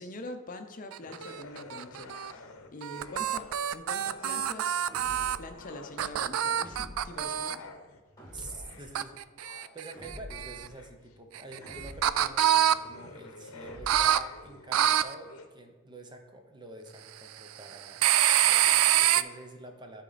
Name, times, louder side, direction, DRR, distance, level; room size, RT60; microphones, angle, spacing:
voice 1, 0.0-4.8 5.4-7.6, left 2 dB, 40° left, 6 dB, 0.6 m, -44 dB
sound 1, 0.9-2.3 2.8-5.4 6.0-7.5 8.9-10.7 11.3-12.7 13.9-14.2 14.7-15.0 18.0-19.2, right 11 dB, 80° right, 0.3 m, -26 dB
sound 2, 1.0-3.7 4.0-6.4 6.9-15.5, left 3 dB, 90° left, 0.7 m, -50 dB
sound 3, 4.9-5.5 6.6-7.2 8.2-8.8 9.9-10.6 11.6-12.3 13.6-14.2, left 1 dB, 15° left, 2.0 m, -46 dB
voice 2, 8.3-18.1 18.4-20.0, right 2 dB, 20° right, 5 dB, 0.7 m, -47 dB
11.5 x 4.2 x 4.0 m, 1.4 s
head